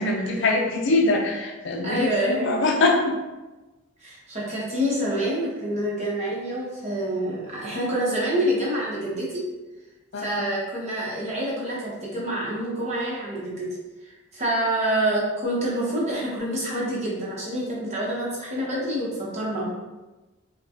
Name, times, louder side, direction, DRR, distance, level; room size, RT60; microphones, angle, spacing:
voice 1, 0.0-3.2 10.1-10.4, left 2 dB, 55° left, 1 dB, 0.5 m, -23 dB
voice 2, 1.8-2.5 4.0-9.4 10.2-13.7 14.0-19.7, right 1 dB, 35° right, -6 dB, 1.0 m, -27 dB
4.9 x 2.3 x 2.9 m, 1.1 s
head